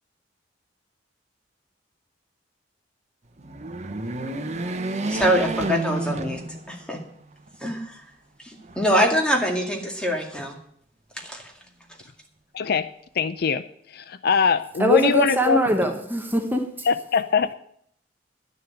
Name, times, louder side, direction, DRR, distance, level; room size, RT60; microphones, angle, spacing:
sound 1, 3.4-7.0 7.5-7.6 8.6-9.4, right 2 dB, 40° right, 0.9 m, -30 dB
voice 1, 5.1-7.0 7.6-8.0 8.4-10.6 11.2-11.4, equal, 5° left, 1 dB, 2.1 m, -24 dB
voice 2, 12.5-12.9 13.2-13.6 13.9-15.6 16.8-17.5, left 6 dB, 60° left, 13 dB, 0.5 m, -22 dB
voice 3, 14.8-16.7, right 1 dB, 10° right, 4 dB, 1.1 m, -22 dB
11.0 x 6.6 x 8.7 m, 0.67 s
head